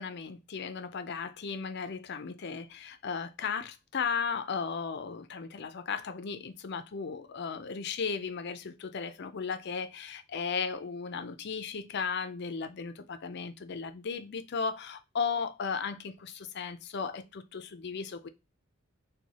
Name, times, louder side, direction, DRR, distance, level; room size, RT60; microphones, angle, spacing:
voice 1, 0.0-18.3, left 5 dB, 55° left, 0.5 m, -35 dB
4.6 x 2.2 x 4.0 m
head